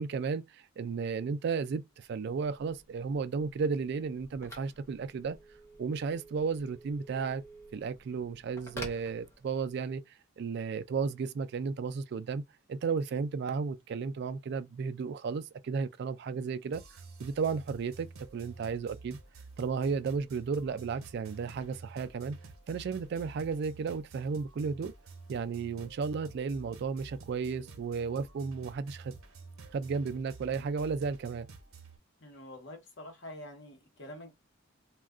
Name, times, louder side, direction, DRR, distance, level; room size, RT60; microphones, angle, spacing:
voice 1, 0.0-5.4 5.8-7.4 7.7-10.0 10.4-12.4 12.7-16.8 17.2-18.1 18.3-19.2 19.6-22.4 22.7-24.9 25.3-29.1 29.7-31.5, right 5 dB, 50° right, 0.3 m, -33 dB
Telephone, 2.1-9.9, equal, 15° left, 0.8 m, -51 dB
sound 1, 16.7-32.0, right 4 dB, 80° right, 0.7 m, -50 dB
voice 2, 32.2-34.3, left 1 dB, 55° left, 1.0 m, -46 dB
2.4 x 2.2 x 3.5 m
head